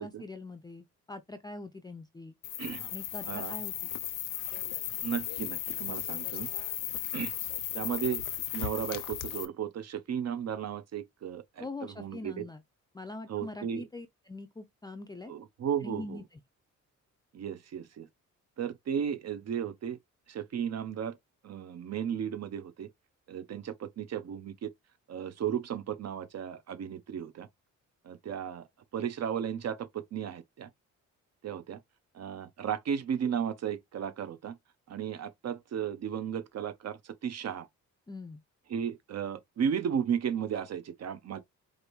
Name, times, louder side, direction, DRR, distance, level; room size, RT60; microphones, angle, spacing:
voice 1, 0.0-2.4 2.9-3.9 11.6-12.6 12.9-15.3 15.8-16.4 38.1-38.4, left 2 dB, 15° left, 0.5 m, -43 dB
sound 1, 2.4-9.5, left 13 dB, 90° left, 0.8 m, -36 dB
voice 2, 2.6-2.9 3.2-3.6 5.0-6.5 7.1-7.3 7.7-8.2 8.5-12.4 13.3-13.9 15.3-16.2 17.3-18.1 18.6-20.0 20.3-21.2 21.4-22.9 23.3-24.7 25.1-27.5 28.0-28.7 28.9-30.7 31.4-31.8 32.1-34.6 34.9-37.7 38.7-41.4, right 8 dB, 55° right, 0.7 m, -34 dB
4.9 x 2.6 x 3.1 m
cardioid pair, 115°, 31 cm